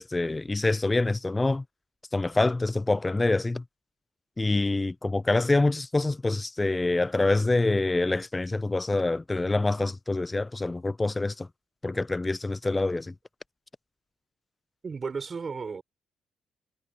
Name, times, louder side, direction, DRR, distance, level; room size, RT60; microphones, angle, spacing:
voice 1, 0.0-1.6 2.1-3.6 4.4-11.5 11.8-13.1, left 2 dB, 20° left, 0.7 m, -26 dB
voice 2, 14.8-15.8, right 5 dB, 40° right, 4.7 m, -34 dB
hypercardioid pair, 45°, 0 cm